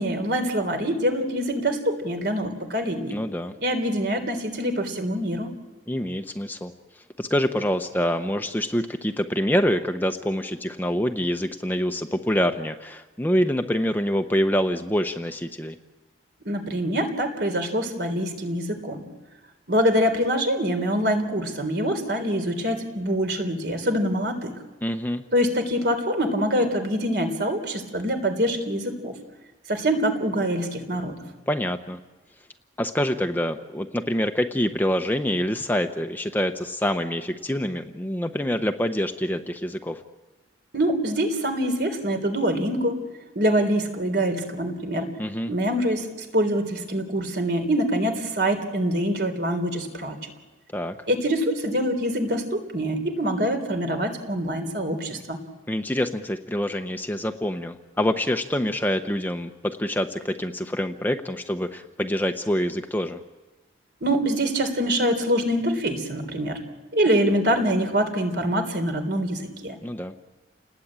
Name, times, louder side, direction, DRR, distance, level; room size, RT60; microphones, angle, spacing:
voice 1, 0.0-3.2 3.6-5.5 16.5-19.0 19.7-24.6 25.3-29.1 29.7-31.2 40.7-43.0 43.4-45.1 45.5-50.3 51.1-55.4 64.0-66.6 66.9-69.8, equal, 55° right, 7 dB, 3.6 m, -25 dB
voice 2, 3.1-3.6 5.9-6.7 7.2-15.7 24.8-25.2 31.5-32.0 32.8-40.0 45.2-45.5 50.7-51.0 55.7-63.2 69.8-70.1, equal, 10° left, 6 dB, 0.8 m, -26 dB
29.5 x 20.0 x 8.9 m, 1.2 s
head